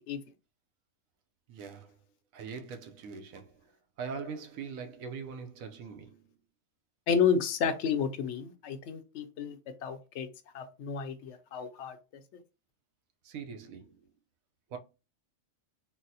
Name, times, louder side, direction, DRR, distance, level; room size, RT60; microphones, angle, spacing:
voice 1, 1.5-2.0 2.3-3.7 4.0-6.4 13.2-14.1 14.7-14.8, right 5 dB, 85° right, 1.0 m, -42 dB
voice 2, 7.1-10.3 10.5-12.0, left 6 dB, 70° left, 0.8 m, -31 dB
4.0 x 2.0 x 2.7 m
omnidirectional pair, 1.4 m